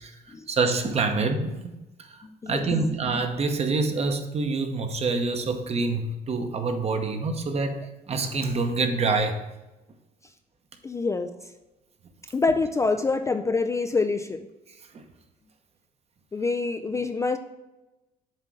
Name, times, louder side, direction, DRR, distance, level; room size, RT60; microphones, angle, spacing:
voice 1, 0.0-1.7 2.0-9.5 14.7-15.0, right 3 dB, 40° right, 6 dB, 0.9 m, -27 dB
voice 2, 2.4-3.2 10.8-11.3 12.3-14.5 16.3-17.4, left 3 dB, 20° left, 8 dB, 0.3 m, -26 dB
7.4 x 3.6 x 6.3 m, 1.0 s
cardioid pair, 110°, 17 cm